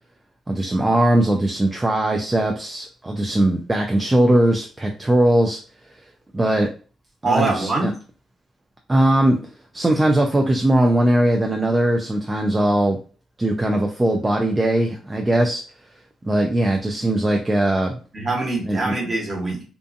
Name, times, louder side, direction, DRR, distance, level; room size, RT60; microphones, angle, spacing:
voice 1, 0.5-5.6 6.3-6.7 7.2-7.9 8.9-9.4 9.7-13.0 13.4-15.6 16.2-18.0 18.6-18.9, right 1 dB, 15° right, 2 dB, 0.3 m, -19 dB
voice 2, 7.2-7.9 18.1-19.6, right 2 dB, 35° right, -1 dB, 1.1 m, -23 dB
2.5 x 2.4 x 2.5 m, 0.38 s
cardioid pair, 90°, 0 cm